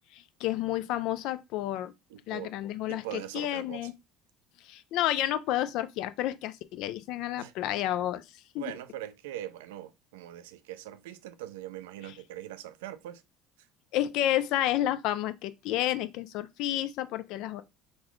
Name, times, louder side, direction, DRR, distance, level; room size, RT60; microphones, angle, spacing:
voice 1, 0.1-1.9 2.3-3.9 4.6-8.7 13.9-17.6, left 13 dB, 70° left, 0.4 m, -30 dB
voice 2, 2.1-2.6 2.9-3.9 7.4-7.5 8.6-13.2, right 13 dB, 85° right, 0.3 m, -41 dB
3.8 x 2.3 x 3.0 m
supercardioid pair, 85°, 0 cm